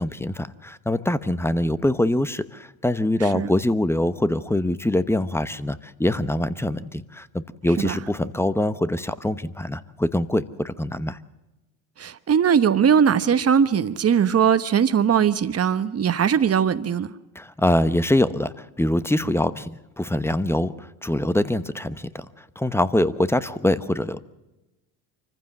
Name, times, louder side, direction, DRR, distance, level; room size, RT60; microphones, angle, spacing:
voice 1, 0.0-11.2 17.3-24.2, left 1 dB, 5° left, 0.9 m, -24 dB
voice 2, 12.0-17.1, right 7 dB, 35° right, 1.1 m, -20 dB
25.0 x 15.0 x 7.4 m
supercardioid pair, 85°, 44 cm